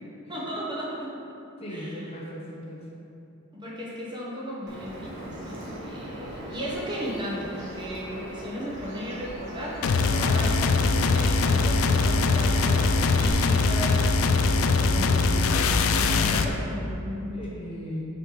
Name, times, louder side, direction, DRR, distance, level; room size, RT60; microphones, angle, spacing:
voice 1, 0.3-1.1 1.7-2.0 3.5-17.4, equal, 20° right, -5 dB, 1.0 m, -35 dB
voice 2, 1.6-2.9 17.3-18.1, equal, 25° left, -4 dB, 0.7 m, -38 dB
Bird vocalization bird call bird song, 4.7-13.3, right 1 dB, 55° right, 1.3 m, -39 dB
sound 1, 9.8-16.5, left 4 dB, 70° left, 0.4 m, -22 dB
6.1 x 4.8 x 3.8 m, 2.8 s
head